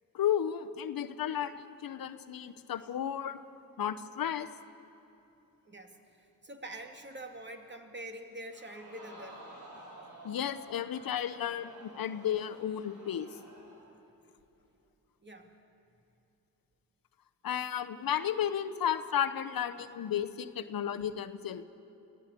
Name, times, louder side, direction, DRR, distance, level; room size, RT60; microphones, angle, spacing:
voice 1, 0.1-3.4 3.8-4.5 10.2-13.3 17.4-21.6, left 9 dB, 75° left, 11 dB, 0.9 m, -33 dB
voice 2, 5.7-9.4 15.2-15.5, right 1 dB, 30° right, 4 dB, 2.6 m, -45 dB
Crowd, 8.5-14.0 14.4-14.5, right 1 dB, 55° right, 5.3 m, -52 dB
24.0 x 15.5 x 8.4 m, 2.8 s
cardioid pair, 55°, 35 cm